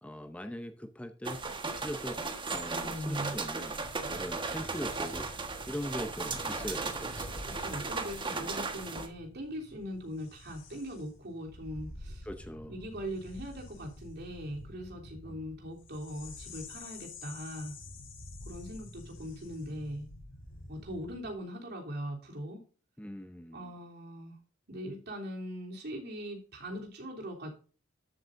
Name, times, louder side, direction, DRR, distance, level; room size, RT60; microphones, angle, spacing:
voice 1, 0.0-1.5 1.7-2.2 2.5-3.8 4.1-5.3 5.7-7.6 8.3-8.5 12.2-12.8 15.3-15.4 23.0-23.7, equal, 5° left, 9 dB, 0.6 m, -41 dB
sound 1, 1.2-9.1, right 4 dB, 25° right, 1.4 m, -36 dB
voice 2, 2.7-3.4 7.5-12.3 12.7-17.8 18.4-20.1 20.7-22.6 23.5-24.4 24.7-27.5, equal, 55° right, 0 dB, 3.2 m, -40 dB
sound 2, 3.8-21.4, left 2 dB, 70° left, 3.1 m, -49 dB
13.0 x 8.0 x 2.6 m, 0.37 s
head